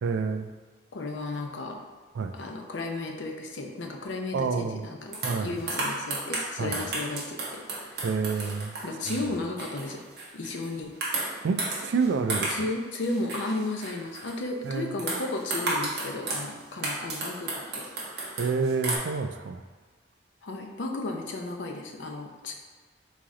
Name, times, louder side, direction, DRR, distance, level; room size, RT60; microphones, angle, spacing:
voice 1, 0.0-0.5 2.1-2.3 4.3-4.9 5.2-5.5 6.6-6.8 8.0-8.7 9.1-9.2 11.4-12.6 14.6-15.0 18.4-19.6, right 5 dB, 75° right, 7 dB, 0.3 m, -28 dB
voice 2, 0.9-1.8 2.3-8.1 8.8-10.0 10.3-10.9 12.5-17.8 20.4-22.5, left 2 dB, 75° left, 2 dB, 0.6 m, -34 dB
sound 1, 5.1-10.7 11.0-12.7 13.0-14.4 15.0-16.5 16.8-19.0, right 2 dB, 55° right, 1.0 m, -33 dB
3.8 x 3.2 x 3.7 m, 1.4 s
head